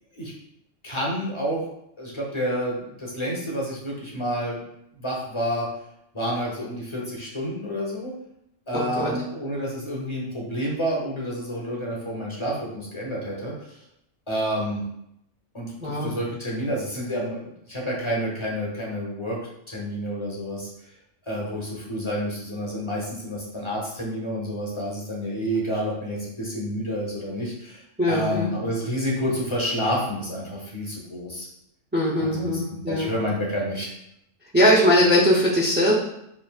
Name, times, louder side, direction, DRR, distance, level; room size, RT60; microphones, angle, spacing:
voice 1, 0.8-1.6 2.0-4.6 5.0-5.7 6.1-8.1 8.7-13.7 14.3-14.8 15.5-19.4 19.7-20.7 21.3-27.8 28.1-31.5 32.2-33.9, equal, 25° left, -4 dB, 0.9 m, -29 dB
voice 2, 8.7-9.1 15.8-16.1 28.0-28.5 31.9-33.1 34.5-36.0, equal, 15° right, -6 dB, 0.3 m, -20 dB
5.7 x 2.6 x 2.3 m, 0.78 s
omnidirectional pair, 1.4 m